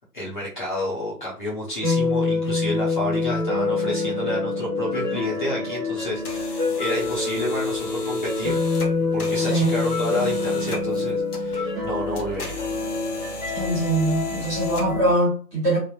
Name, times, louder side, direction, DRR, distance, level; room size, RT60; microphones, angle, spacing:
voice 1, 0.1-8.6 9.1-12.7, left 1 dB, 30° left, -6 dB, 1.0 m, -30 dB
sound 1, 1.8-15.1, left 3 dB, 10° left, 1.2 m, -26 dB
sound 2, 6.0-15.2, left 2 dB, 65° left, 1.0 m, -38 dB
voice 2, 9.3-9.8 13.5-15.8, right 2 dB, 10° right, -9 dB, 1.3 m, -23 dB
3.3 x 2.4 x 2.4 m, 0.40 s
figure-of-eight pair, 145°, 49 cm